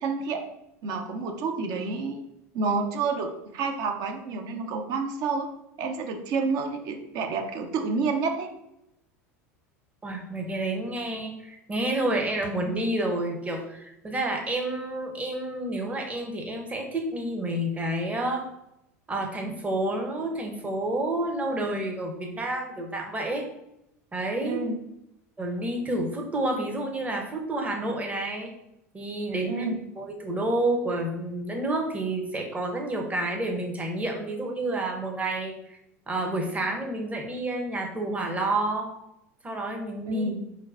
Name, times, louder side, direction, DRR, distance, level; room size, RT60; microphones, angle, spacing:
voice 1, 0.0-0.4 0.8-2.2 2.5-5.5 5.8-8.5 24.4-24.8 29.5-29.8 40.1-40.4, right 4 dB, 50° right, 5 dB, 0.5 m, -29 dB
voice 2, 10.0-18.4 19.1-23.4 24.1-24.6 25.4-28.5 28.9-29.7 30.0-35.8 36.1-38.9 39.4-40.2, right 1 dB, 15° right, 2 dB, 0.8 m, -29 dB
4.4 x 2.2 x 2.5 m, 0.84 s
hypercardioid pair, 85°, 9 cm